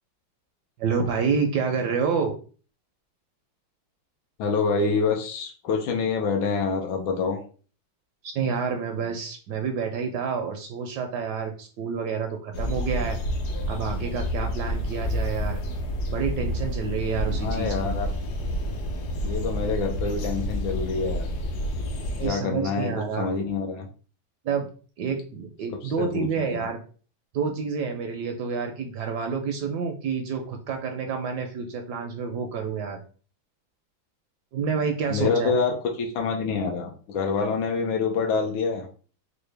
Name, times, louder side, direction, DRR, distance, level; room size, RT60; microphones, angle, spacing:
voice 1, 0.8-2.3 8.2-13.2 13.7-15.6 16.1-17.9 22.2-23.3 24.4-24.7 25.0-26.8 27.3-33.0 34.5-35.5, right 5 dB, 75° right, 4 dB, 1.0 m, -28 dB
voice 2, 4.4-7.4 17.3-18.1 19.2-21.3 22.2-23.9 25.8-26.7 35.1-38.9, left 4 dB, 85° left, 1 dB, 1.5 m, -26 dB
sound 1, 12.5-22.3, equal, 70° left, 1.0 m, -29 dB
4.6 x 2.1 x 3.2 m, 0.40 s
omnidirectional pair, 2.1 m